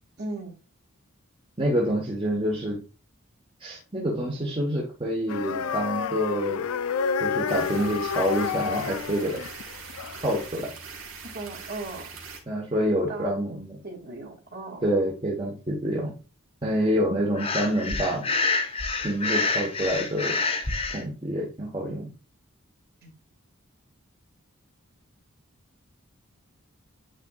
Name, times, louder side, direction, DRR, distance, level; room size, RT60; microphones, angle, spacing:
voice 1, 0.2-0.6 11.2-12.0 12.8-13.6 13.8-14.9 23.0-23.1, right 2 dB, 45° right, 0 dB, 2.2 m, -37 dB
voice 2, 1.6-2.8 3.6-6.6 7.2-9.4 10.2-10.7 12.5-13.8 14.8-16.1 16.6-18.2 19.0-20.4 20.9-22.1, equal, 25° right, -3 dB, 1.3 m, -27 dB
sound 1, 5.3-10.5, left 6 dB, 80° left, 0.4 m, -29 dB
sound 2, 7.5-12.4, right 5 dB, 75° right, 1.8 m, -42 dB
Breathing, 17.3-21.0, left 3 dB, 25° left, 0.8 m, -27 dB
9.1 x 4.3 x 2.4 m, 0.32 s
head